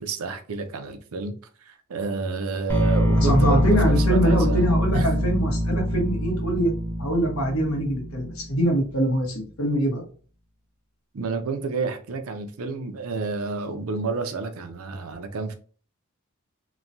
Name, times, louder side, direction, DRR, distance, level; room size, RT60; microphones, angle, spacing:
voice 1, 0.0-1.3 1.6-5.2 11.1-15.5, right 4 dB, 80° right, 0.5 m, -30 dB
sound 1, 2.7-8.7, equal, 10° left, 0.9 m, -24 dB
voice 2, 3.2-6.7 7.0-10.0, equal, 80° left, 1.0 m, -23 dB
3.0 x 2.2 x 2.6 m
head